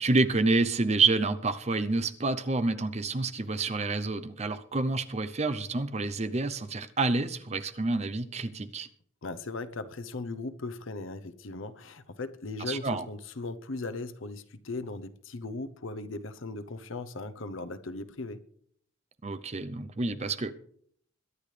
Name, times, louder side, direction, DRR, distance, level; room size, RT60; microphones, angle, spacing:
voice 1, 0.0-8.9 12.6-13.1 19.2-20.5, right 3 dB, 35° right, 0.7 m, -28 dB
voice 2, 9.2-18.4, left 3 dB, 75° left, 0.8 m, -38 dB
22.5 x 10.5 x 3.3 m
head